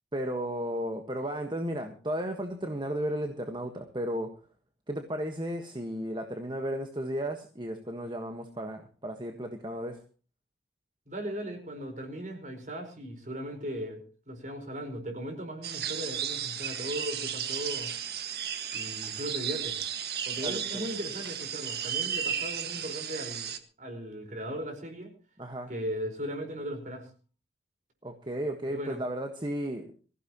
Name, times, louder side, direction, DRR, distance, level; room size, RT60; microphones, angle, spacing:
voice 1, 0.1-4.3 4.9-10.0 20.4-20.9 25.4-25.7 28.0-29.9, equal, 25° right, 5 dB, 1.5 m, -34 dB
voice 2, 11.1-17.9 18.7-19.7 20.2-23.5 23.8-25.1 25.7-27.1 28.6-29.0, equal, 45° right, 5 dB, 4.9 m, -37 dB
sound 1, 15.6-23.6, right 8 dB, 60° right, 1.7 m, -34 dB
23.5 x 15.5 x 3.0 m, 0.37 s
head